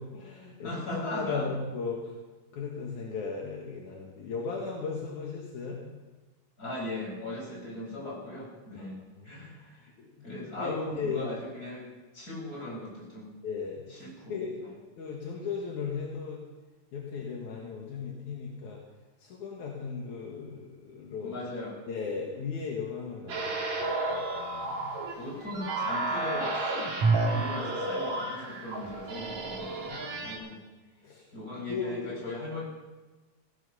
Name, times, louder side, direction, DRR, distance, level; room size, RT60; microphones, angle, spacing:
voice 1, 0.0-2.0 2.5-5.8 8.8-8.9 9.2-9.4 10.0-11.2 13.4-14.6 15.0-16.4 16.9-18.8 19.2-21.4 21.9-24.9 29.9-30.4 31.0-31.2 31.7-32.2, left 5 dB, 70° left, -2 dB, 3.1 m, -37 dB
voice 2, 0.6-1.5 6.6-9.0 9.2-9.9 10.2-11.9 12.1-13.3 13.9-14.7 21.2-21.8 25.1-26.6 27.1-29.7 30.2-30.6 31.3-32.6, left 2 dB, 25° left, -3 dB, 6.0 m, -38 dB
sound 1, 23.3-30.4, right 2 dB, 60° right, 3.7 m, -31 dB
16.5 x 14.0 x 5.6 m, 1.2 s
omnidirectional pair, 3.6 m